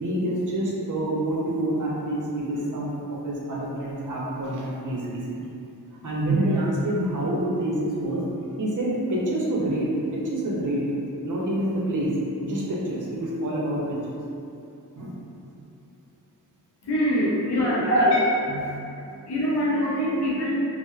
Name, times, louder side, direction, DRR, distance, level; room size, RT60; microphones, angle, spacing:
voice 1, 0.0-5.4 6.0-8.2 8.6-10.8 11.2-12.1 12.4-14.1 14.9-15.2 17.9-18.1 18.5-18.6, right 1 dB, 50° right, -5 dB, 0.7 m, -26 dB
voice 2, 16.8-18.2 18.5-20.5, equal, 85° left, -7 dB, 0.7 m, -25 dB
2.9 x 2.0 x 2.3 m, 2.7 s
cardioid pair, 45°, 39 cm